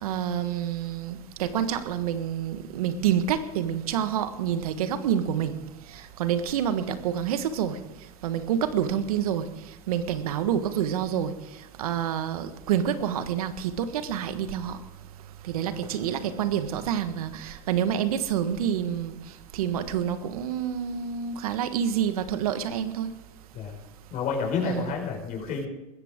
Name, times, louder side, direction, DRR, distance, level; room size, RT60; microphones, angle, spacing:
voice 1, 0.0-5.5 6.2-7.8 8.2-9.4 9.9-11.3 11.8-14.8 15.5-19.1 19.5-23.1 24.6-24.9, right 9 dB, 80° right, 10 dB, 1.5 m, -27 dB
voice 2, 24.1-25.7, left 6 dB, 45° left, 1 dB, 5.2 m, -29 dB
20.0 x 15.0 x 3.7 m, 1.0 s
hypercardioid pair, 100°, 19 cm